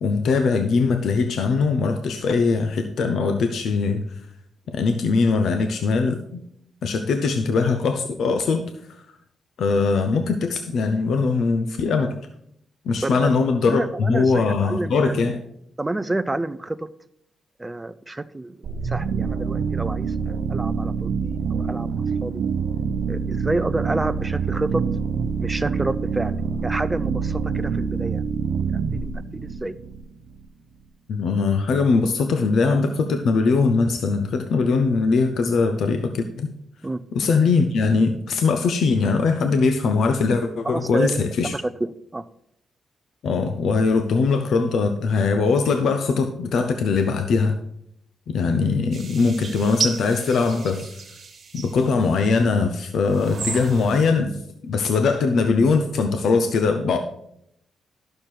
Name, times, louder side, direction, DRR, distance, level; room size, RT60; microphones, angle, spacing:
voice 1, 0.0-4.1 4.7-6.4 6.8-9.0 9.6-12.2 12.9-15.4 31.1-36.5 37.1-41.5 43.2-47.6 48.3-50.9 51.5-57.0, left 4 dB, 75° left, 7 dB, 0.7 m, -21 dB
voice 2, 13.0-13.3 13.6-15.1 15.8-16.9 17.6-22.3 23.1-24.8 25.4-28.2 28.7-29.1 29.4-29.8 36.8-37.0 40.6-41.2 41.5-42.3, right 2 dB, 15° right, 12 dB, 0.4 m, -29 dB
sound 1, 18.6-30.4, right 5 dB, 65° right, 0.7 m, -26 dB
sound 2, 48.9-52.4 53.0-54.1, right 5 dB, 40° right, 1.6 m, -33 dB
12.0 x 6.6 x 4.4 m, 0.74 s
wide cardioid pair, 135°, 0 cm